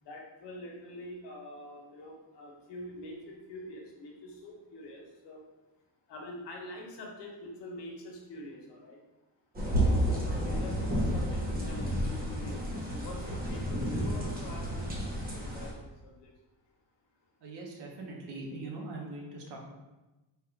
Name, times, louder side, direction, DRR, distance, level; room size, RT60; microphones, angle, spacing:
voice 1, 0.0-5.4 6.1-9.0 10.1-16.3, left 1 dB, 80° left, 0 dB, 1.0 m, -45 dB
sound 1, 9.5-15.7, equal, 20° right, 0.6 m, -31 dB
voice 2, 17.4-19.6, right 2 dB, 80° right, -1 dB, 1.0 m, -41 dB
3.4 x 2.4 x 4.4 m, 1.1 s
cardioid pair, 170°, 41 cm